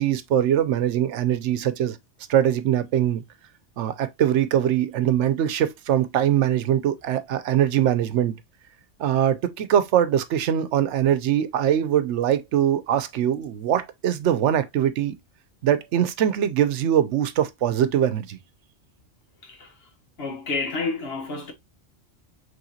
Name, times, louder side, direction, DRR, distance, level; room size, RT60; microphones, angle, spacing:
voice 1, 0.0-2.0 2.3-3.2 3.8-8.4 9.0-15.1 15.6-18.4, right 10 dB, 80° right, 0.9 m, -22 dB
voice 2, 19.4-19.7 20.2-21.5, left 3 dB, 60° left, 1.3 m, -29 dB
5.6 x 3.2 x 2.7 m
omnidirectional pair, 1.2 m